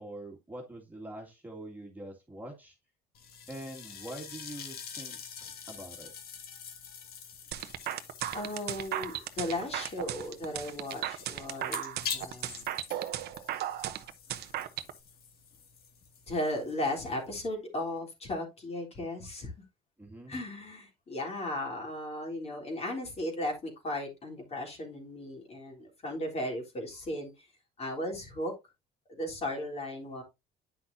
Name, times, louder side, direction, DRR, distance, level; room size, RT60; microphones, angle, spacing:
voice 1, 0.0-2.8 3.5-6.1 20.0-20.4, right 1 dB, 10° right, -1 dB, 2.2 m, -44 dB
sound 1, 3.1-17.4, left 7 dB, 65° left, 1.8 m, -45 dB
sound 2, 7.5-14.9, right 12 dB, 70° right, 0.8 m, -35 dB
voice 2, 8.3-12.7 16.3-19.5 20.3-27.5 27.8-28.5 29.1-30.2, left 1 dB, 35° left, 0 dB, 3.6 m, -36 dB
9.5 x 6.0 x 2.7 m, 0.22 s
cardioid pair, 110°, 17 cm